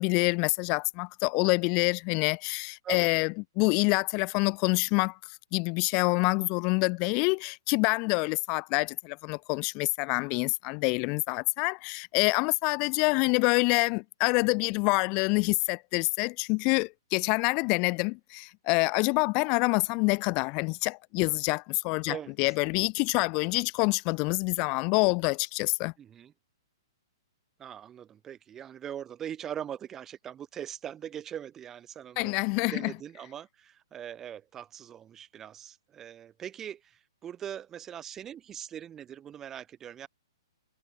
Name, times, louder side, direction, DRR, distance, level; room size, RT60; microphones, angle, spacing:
voice 1, 0.0-5.2 5.5-25.9 32.2-32.9, left 32 dB, 30° left, 0.4 m, -26 dB
voice 2, 22.1-22.5 26.0-26.3 27.6-32.3 32.7-40.1, right 9 dB, 15° right, 0.6 m, -41 dB
hypercardioid pair, 155°, 2 cm